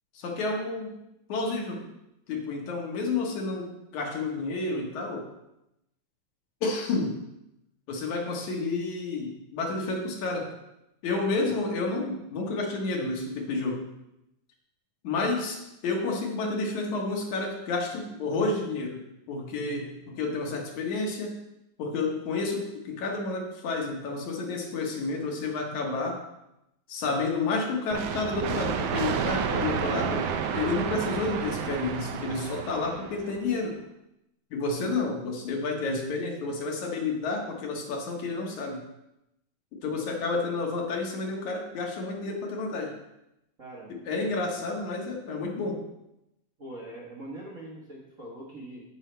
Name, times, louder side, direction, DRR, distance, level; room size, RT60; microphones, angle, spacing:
voice 1, 0.1-1.0 1.3-1.8 2.3-5.3 6.6-7.2 7.9-10.5 11.0-13.9 15.0-19.0 19.3-21.4 21.8-26.2 26.9-33.8 34.5-38.8 39.8-42.9 43.9-45.8, left 3 dB, 75° left, 0 dB, 2.9 m, -30 dB
sound 1, 27.9-33.5, right 7 dB, 85° right, 2.0 m, -30 dB
voice 2, 43.6-44.6 46.6-48.8, right 1 dB, 40° right, -4 dB, 1.2 m, -43 dB
14.5 x 5.6 x 3.4 m, 0.87 s
omnidirectional pair, 3.4 m